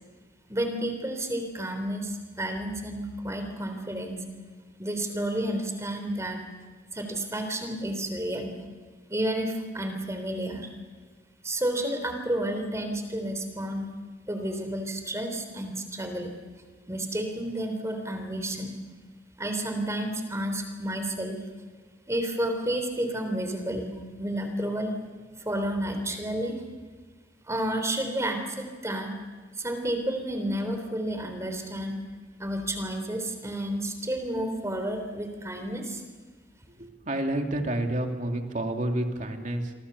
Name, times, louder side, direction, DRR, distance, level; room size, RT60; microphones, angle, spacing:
voice 1, 0.5-4.2 4.8-6.4 6.9-8.6 9.1-10.7 11.4-13.9 14.3-16.3 16.9-18.8 19.4-21.4 22.1-24.9 25.4-26.6 27.4-29.1 29.5-32.0 32.4-36.0, right 1 dB, 15° right, 6 dB, 3.6 m, -31 dB
voice 2, 36.8-39.7, right 1 dB, 45° right, 4 dB, 2.7 m, -29 dB
28.5 x 23.5 x 7.0 m, 1.4 s
head